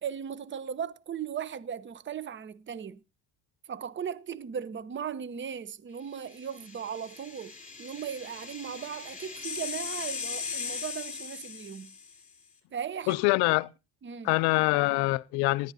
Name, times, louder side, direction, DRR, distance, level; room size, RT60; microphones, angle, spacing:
voice 1, 0.0-3.0 3.6-7.5 7.8-11.9 12.7-13.2 14.0-14.3, right 8 dB, 30° right, 0.8 m, -37 dB
sound 1, 6.3-12.2, left 6 dB, 20° left, 4.5 m, -39 dB
voice 2, 13.1-13.7 14.2-15.7, left 22 dB, 85° left, 0.6 m, -25 dB
19.0 x 11.5 x 2.7 m
supercardioid pair, 85°, 39 cm